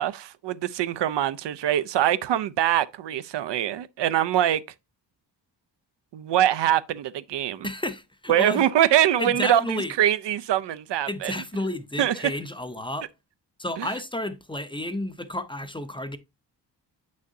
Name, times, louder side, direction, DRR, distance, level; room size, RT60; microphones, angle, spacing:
voice 1, 0.0-4.6 6.1-7.7 8.3-11.3 12.0-12.3 13.8-13.9, right 11 dB, 85° right, 0.6 m, -23 dB
voice 2, 7.6-8.6 9.2-9.9 11.1-13.1 13.6-16.2, left 1 dB, 10° left, 0.5 m, -31 dB
8.3 x 6.3 x 2.6 m
wide cardioid pair, 150°, 42 cm